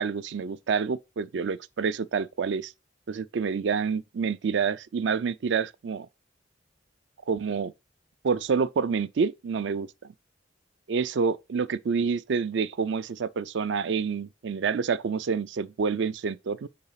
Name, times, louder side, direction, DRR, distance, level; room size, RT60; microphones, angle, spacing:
voice 1, 0.0-2.7 3.1-6.1 7.3-7.7 8.2-9.9 10.9-16.7, right 5 dB, 65° right, 0.4 m, -28 dB
4.8 x 4.1 x 5.6 m
head